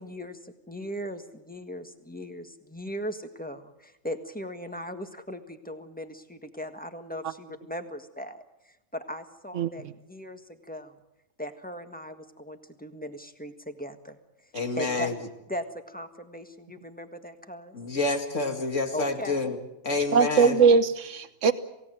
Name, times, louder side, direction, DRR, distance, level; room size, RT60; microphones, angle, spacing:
voice 1, 0.0-8.4 8.9-11.0 11.4-14.2 14.8-15.1 15.5-17.8 18.9-19.4 19.9-20.3, equal, 5° left, 7 dB, 1.6 m, -38 dB
voice 2, 14.5-15.2 17.7-19.6 19.8-20.6, left 3 dB, 80° left, 5 dB, 2.7 m, -28 dB
voice 3, 20.1-21.5, right 5 dB, 80° right, 12 dB, 1.4 m, -20 dB
28.0 x 17.0 x 7.8 m, 0.93 s
omnidirectional pair, 1.3 m